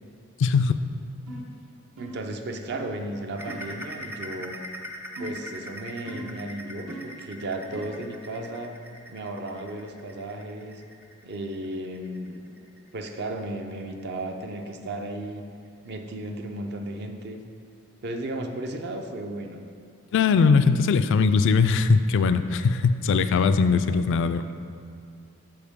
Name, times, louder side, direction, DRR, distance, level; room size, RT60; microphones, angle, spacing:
voice 1, 0.4-0.8 20.1-24.4, left 5 dB, 60° left, 10 dB, 0.3 m, -20 dB
sound 1, 1.3-1.6 2.0-2.3 2.7-3.0 3.4-3.8 5.2-5.5 6.1-6.4 6.9-7.2 7.7-8.1, right 2 dB, 70° right, 1.0 m, -40 dB
voice 2, 2.0-4.6 5.2-8.7 9.1-10.8 11.2-12.6 12.9-15.5 15.8-17.4 18.0-19.6 23.7-24.0, right 1 dB, 55° right, 5 dB, 0.6 m, -35 dB
sound 2, 3.4-14.6 15.0-15.3 15.7-15.8 16.3-16.4, equal, 10° right, 0.4 m, -42 dB
11.5 x 4.6 x 3.6 m, 2.3 s
head